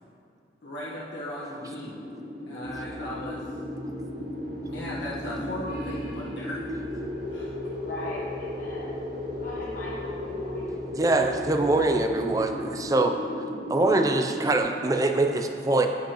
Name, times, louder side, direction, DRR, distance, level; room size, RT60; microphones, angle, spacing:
voice 1, 0.6-2.0 2.5-3.4 4.5-6.6 7.3-7.6, left 1 dB, 90° left, -8 dB, 1.4 m, -37 dB
sound 1, 1.5-14.6, left 1 dB, 70° right, 1.7 m, -35 dB
sound 2, 2.6-12.8, equal, 50° right, 1.1 m, -41 dB
voice 2, 7.8-10.8 11.1-12.0, left 1 dB, 45° left, -7 dB, 1.0 m, -41 dB
voice 3, 10.9-13.2 13.7-15.9, right 2 dB, 20° right, 5 dB, 0.4 m, -23 dB
10.0 x 7.8 x 3.0 m, 2.4 s
head